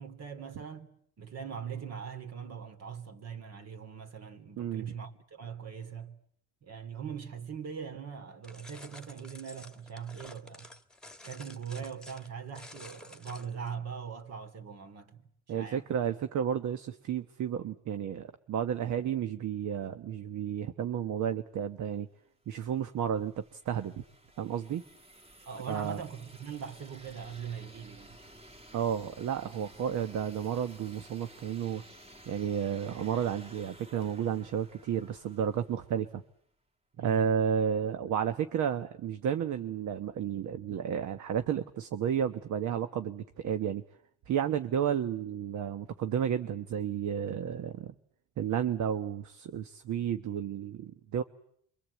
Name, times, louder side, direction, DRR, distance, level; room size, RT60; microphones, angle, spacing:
voice 1, 0.0-6.2 6.6-10.7 11.2-15.3 15.5-15.9 25.4-28.2 36.9-37.3, right 7 dB, 55° right, 3.2 m, -41 dB
voice 2, 4.6-4.9 15.5-22.1 22.5-24.0 24.4-24.8 25.7-26.0 28.7-31.8 32.3-36.2 37.0-43.8 44.3-47.9 48.4-51.2, right 8 dB, 75° right, 1.2 m, -32 dB
sound 1, 8.4-13.7, left 2 dB, 5° left, 1.8 m, -51 dB
sound 2, 22.6-36.2, right 1 dB, 20° right, 2.1 m, -54 dB
26.5 x 24.0 x 8.4 m
cardioid pair, 90°, 30 cm